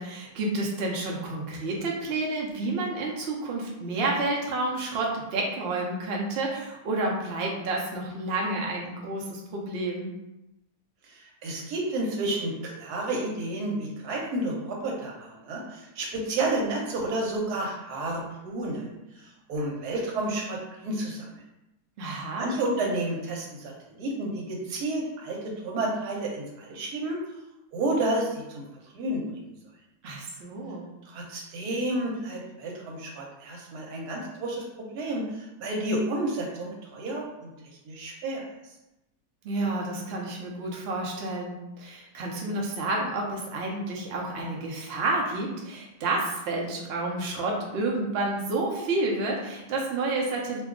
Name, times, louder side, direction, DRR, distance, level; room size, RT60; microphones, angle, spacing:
voice 1, 0.0-10.1 22.0-22.5 30.0-30.9 39.4-50.6, right 2 dB, 60° right, -1 dB, 0.7 m, -30 dB
voice 2, 11.1-21.3 22.1-27.2 27.7-28.4 28.9-29.5 31.1-37.5 37.9-38.4, right 2 dB, 85° right, -1 dB, 1.3 m, -31 dB
2.7 x 2.3 x 3.6 m, 0.95 s
omnidirectional pair, 1.6 m